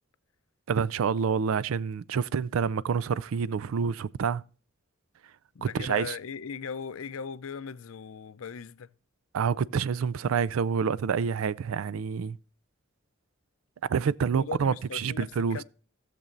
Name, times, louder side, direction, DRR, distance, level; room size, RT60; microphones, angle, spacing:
voice 1, 0.7-4.4 5.6-6.1 9.3-12.4 13.9-15.6, right 6 dB, 80° right, 0.4 m, -27 dB
voice 2, 5.5-8.9 14.3-15.6, left 6 dB, 80° left, 0.5 m, -39 dB
16.5 x 6.9 x 2.5 m
head